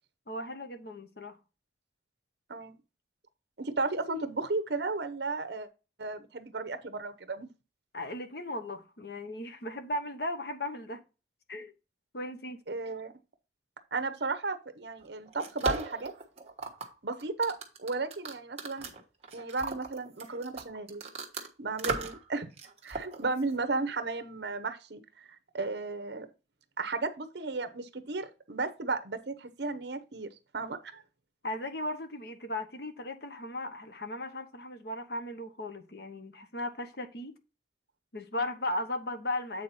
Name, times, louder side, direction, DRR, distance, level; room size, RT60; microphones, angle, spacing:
voice 1, 0.3-1.4 7.9-11.0 11.5-11.7 12.1-12.6 31.4-37.3 38.1-39.6, left 1 dB, 60° left, 1.0 m, -36 dB
voice 2, 3.6-5.7 6.0-7.5 12.7-13.1 13.9-16.1 17.0-18.9 19.3-21.1 21.6-22.5 22.8-25.3 25.5-26.3 26.8-31.0, right 3 dB, 65° right, 0.8 m, -34 dB
sound 1, 15.0-21.5 21.8-22.3 22.6-23.6, right 4 dB, 35° right, 1.3 m, -37 dB
8.4 x 4.1 x 4.1 m
head